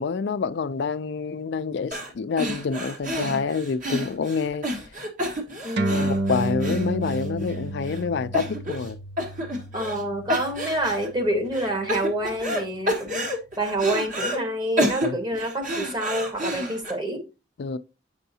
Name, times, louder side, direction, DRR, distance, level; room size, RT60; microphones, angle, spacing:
voice 1, 0.0-4.7 5.2-5.3 5.9-9.0 15.0-15.2 17.6-17.8, left 5 dB, 65° left, 0.4 m, -27 dB
sound 1, 1.9-2.1 2.4-7.5 7.9-8.0 8.3-8.9 9.2-10.0 10.3-11.1 11.5-12.6 12.9-14.4 14.8-16.9, equal, 45° right, 1.5 m, -29 dB
voice 2, 5.6-6.1 9.7-13.3 13.6-17.2, right 1 dB, 25° right, 1.3 m, -27 dB
sound 2, 5.8-12.6, right 1 dB, 60° right, 0.7 m, -31 dB
7.9 x 5.5 x 2.7 m
head